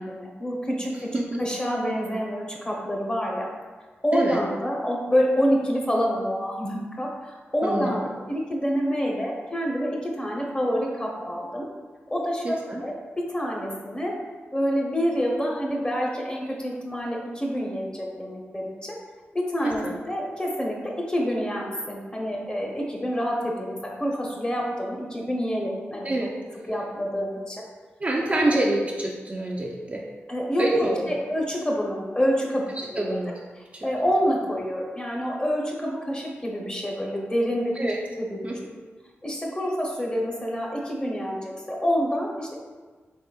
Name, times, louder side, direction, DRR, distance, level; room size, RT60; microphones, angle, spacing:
voice 1, 0.0-1.1 1.4-3.5 4.0-11.7 12.1-14.2 14.5-19.0 19.3-26.1 26.7-27.6 28.3-28.6 30.3-30.9 31.3-32.6 32.9-33.1 33.8-37.9 38.2-38.5 39.2-42.6, equal, 20° left, -2 dB, 0.7 m, -27 dB
voice 2, 0.9-1.4 4.1-4.4 7.6-7.9 12.4-12.8 19.6-19.7 26.0-26.3 28.0-30.0 30.6-31.2 33.0-33.3 33.7-33.9 37.8-38.0 38.4-38.5, right 2 dB, 30° right, -2 dB, 0.4 m, -26 dB
3.8 x 3.4 x 2.3 m, 1.4 s
cardioid pair, 55°, 5 cm